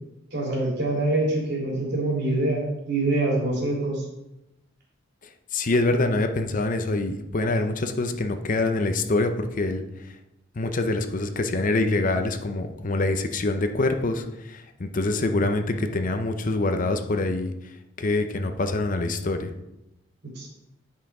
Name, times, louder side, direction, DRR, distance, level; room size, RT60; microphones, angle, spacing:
voice 1, 0.3-4.0 20.3-20.5, right 2 dB, 60° right, -2 dB, 2.9 m, -25 dB
voice 2, 5.5-9.8 10.6-17.5 18.0-19.5, left 2 dB, 45° left, 7 dB, 0.7 m, -25 dB
9.4 x 5.7 x 4.8 m, 0.90 s
head